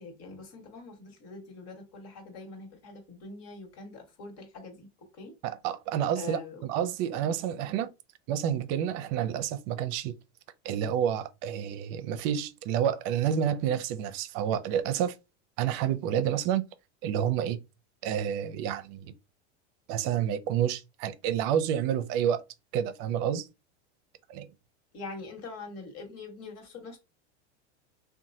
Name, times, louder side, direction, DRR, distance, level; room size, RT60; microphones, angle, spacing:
voice 1, 0.0-4.9 5.1-5.3 6.1-6.6 24.9-27.0, left 3 dB, 45° left, 1.4 m, -43 dB
voice 2, 5.4-7.9 8.3-10.1 10.6-15.1 15.6-16.7 17.0-17.6 18.0-19.1 19.9-22.4 22.7-23.5 24.3-24.5, right 9 dB, 55° right, 0.5 m, -29 dB
2.9 x 2.3 x 2.6 m
supercardioid pair, 110°, 34 cm